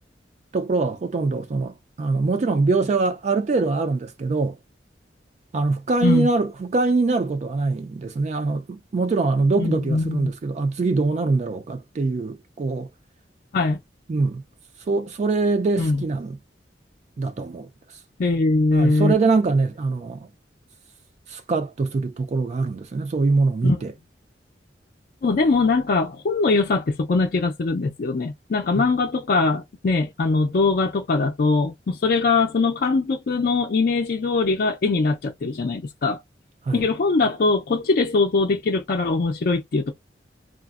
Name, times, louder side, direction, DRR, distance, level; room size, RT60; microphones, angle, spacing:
voice 1, 0.5-4.6 5.5-12.9 14.1-14.4 14.9-16.4 17.2-17.7 18.7-20.3 21.3-23.9 28.7-28.8 36.7-36.8, right 3 dB, 40° right, 0.3 m, -23 dB
voice 2, 9.6-10.3 13.5-13.8 15.8-16.0 18.2-19.1 23.6-23.8 25.2-36.2 36.7-39.9, left 3 dB, 55° left, 0.4 m, -21 dB
3.3 x 2.0 x 2.3 m
head